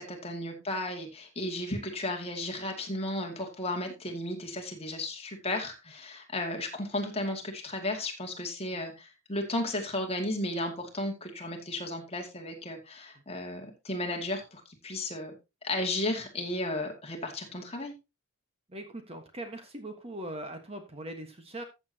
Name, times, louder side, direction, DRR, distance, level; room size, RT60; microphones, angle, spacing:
voice 1, 0.0-15.3 15.6-17.9, left 1 dB, 25° left, 2 dB, 2.3 m, -34 dB
voice 2, 18.7-21.6, right 1 dB, 25° right, 6 dB, 1.4 m, -41 dB
14.0 x 7.2 x 2.9 m, 0.25 s
head